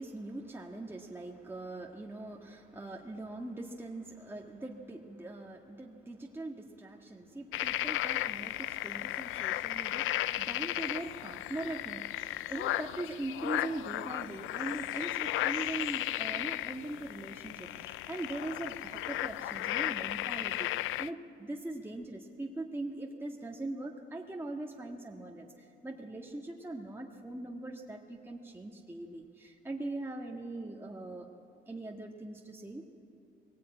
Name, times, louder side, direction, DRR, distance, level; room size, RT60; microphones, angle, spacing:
voice 1, 0.0-12.1 12.5-31.3 31.7-32.8, right 2 dB, 10° right, 0 dB, 1.8 m, -41 dB
sound 1, 7.5-21.1, left 15 dB, 85° left, 0.5 m, -35 dB
21.5 x 19.0 x 9.0 m, 2.6 s
cardioid pair, 90°, 20 cm